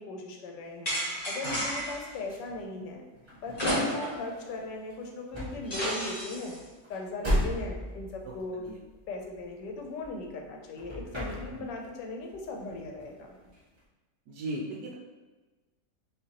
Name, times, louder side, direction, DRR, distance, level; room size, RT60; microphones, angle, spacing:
voice 1, 0.0-3.0 3.4-6.6 6.9-8.6 9.1-13.4, left 2 dB, 85° left, 1 dB, 1.3 m, -38 dB
sound 1, 0.9-2.1 3.5-4.3 4.6-4.7 5.7-6.6, equal, 30° left, 1.0 m, -31 dB
sound 2, 1.1-10.5 10.7-12.0 12.3-13.8, equal, 15° right, 1.3 m, -37 dB
voice 2, 8.2-8.8 11.5-11.6 14.3-15.0, right 2 dB, 75° right, -2 dB, 1.1 m, -38 dB
5.0 x 2.9 x 2.9 m, 1.2 s
omnidirectional pair, 1.8 m